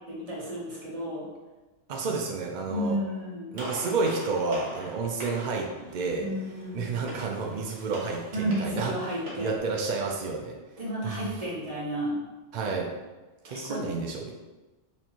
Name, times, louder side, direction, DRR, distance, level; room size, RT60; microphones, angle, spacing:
voice 1, 0.1-1.3 2.7-3.5 6.2-6.9 8.3-9.5 10.8-12.2 13.4-13.8, equal, 30° right, -7 dB, 1.2 m, -32 dB
voice 2, 1.9-3.0 3.5-6.3 6.7-10.6 11.0-11.4 12.5-12.9 13.4-14.3, right 4 dB, 80° right, 0 dB, 0.4 m, -30 dB
Gunshot gunfire, 3.6-9.6, equal, 55° right, 1.3 m, -43 dB
4.3 x 3.1 x 2.8 m, 1.2 s
omnidirectional pair, 1.3 m